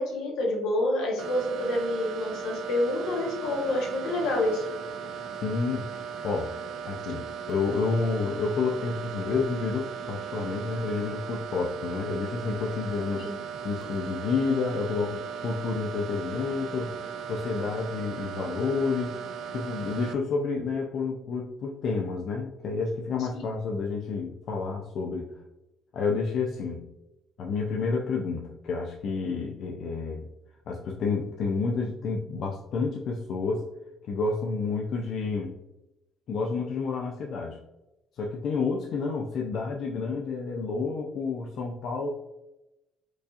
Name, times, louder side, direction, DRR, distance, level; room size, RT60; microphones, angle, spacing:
voice 1, 0.0-4.7 13.1-13.3 23.3-23.5, left 1 dB, 80° left, -1 dB, 1.2 m, -28 dB
sound 1, 1.2-20.1, right 7 dB, 60° right, 0.3 m, -37 dB
voice 2, 5.4-6.5 6.8-13.3 13.6-16.9 17.3-19.2 19.5-25.3 25.9-26.8 27.4-30.3 30.7-33.7 34.1-35.5 36.3-37.6 38.1-42.1, left 4 dB, 55° left, 0 dB, 0.4 m, -30 dB
4.6 x 2.7 x 2.5 m, 0.95 s
cardioid pair, 145°, 0 cm